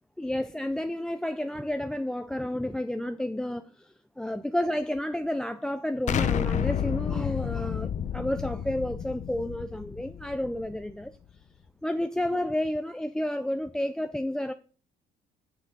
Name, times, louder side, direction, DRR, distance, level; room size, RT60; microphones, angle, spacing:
voice 1, 0.2-11.2 11.8-14.5, left 1 dB, 5° left, 0.4 m, -31 dB
Explosion, 6.1-10.9, left 8 dB, 45° left, 0.7 m, -30 dB
8.5 x 7.6 x 3.8 m
cardioid pair, 110°, 17 cm